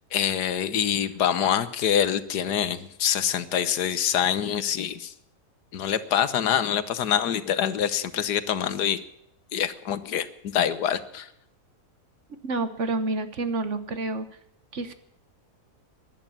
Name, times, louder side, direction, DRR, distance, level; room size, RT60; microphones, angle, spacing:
voice 1, 0.1-5.1 5.7-9.0 9.5-10.3 10.5-11.3, left 9 dB, 90° left, 14 dB, 1.6 m, -25 dB
voice 2, 12.4-14.2 14.7-14.9, right 3 dB, 50° right, 11 dB, 1.4 m, -28 dB
14.5 x 11.0 x 8.9 m, 0.76 s
omnidirectional pair, 1.7 m